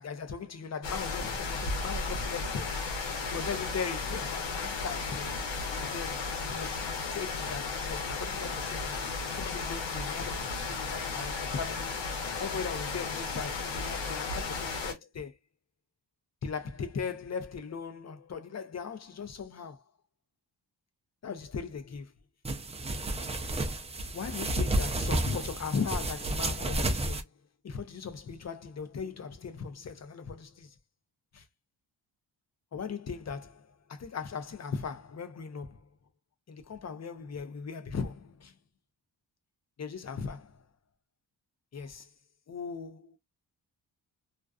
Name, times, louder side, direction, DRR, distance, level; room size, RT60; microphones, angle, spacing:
voice 1, 0.0-2.8 3.3-5.3 5.8-9.0 9.4-12.0 12.4-15.4 16.4-19.8 21.2-22.1 24.1-27.3 27.6-30.7 31.3-31.4 32.7-35.8 36.5-38.5 39.8-40.6 41.7-42.1 42.5-43.2, left 6 dB, 40° left, 0.6 m, -38 dB
sound 1, 0.8-14.9, left 4 dB, 80° left, 1.0 m, -34 dB
sound 2, 22.5-27.2, right 1 dB, 15° right, 0.4 m, -31 dB
2.5 x 2.2 x 2.3 m
cardioid pair, 80°, 44 cm